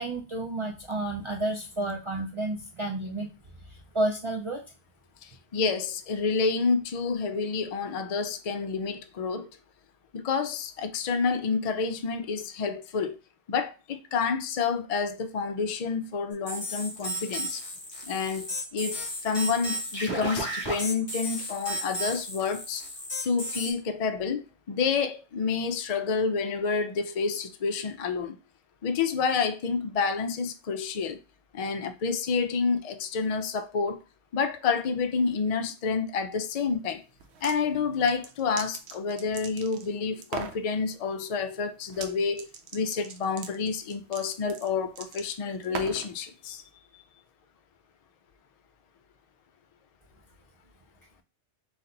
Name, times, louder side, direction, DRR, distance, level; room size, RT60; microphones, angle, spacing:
voice 1, 0.0-3.3 3.7-4.6, right 2 dB, 55° right, 0.3 m, -31 dB
voice 2, 5.2-9.5 10.1-13.2 13.5-17.6 18.1-22.8 23.2-28.4 28.8-31.2 31.5-34.0 34.3-37.0 37.4-42.5 42.7-46.6, left 5 dB, 65° left, 0.3 m, -29 dB
sound 1, 16.5-23.7, equal, 20° left, 1.5 m, -33 dB
sound 2, 37.2-37.6 38.1-39.9 40.2-40.6 41.9-42.1 42.4-46.1, right 6 dB, 75° right, 0.8 m, -39 dB
4.2 x 2.5 x 3.8 m
omnidirectional pair, 1.2 m